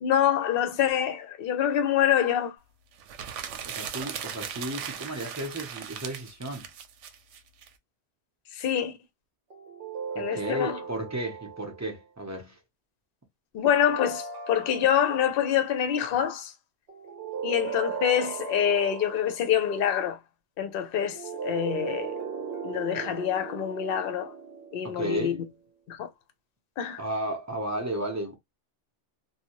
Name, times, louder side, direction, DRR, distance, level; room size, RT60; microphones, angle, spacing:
voice 1, 0.0-2.6 8.5-8.9 10.2-10.8 13.5-16.5 17.4-20.2 20.6-22.1 22.6-24.3 24.7-25.4 25.9-26.1 26.8-27.0, left 9 dB, 60° left, 0.7 m, -26 dB
sound 1, 3.0-7.7, right 8 dB, 85° right, 0.9 m, -38 dB
voice 2, 3.7-6.7 10.1-12.6 24.8-25.4 27.0-28.4, right 1 dB, 20° right, 0.6 m, -33 dB
sound 2, 9.5-12.0 13.6-15.5 16.9-19.6 20.9-25.5, right 6 dB, 60° right, 0.9 m, -37 dB
2.6 x 2.2 x 2.8 m
omnidirectional pair, 1.2 m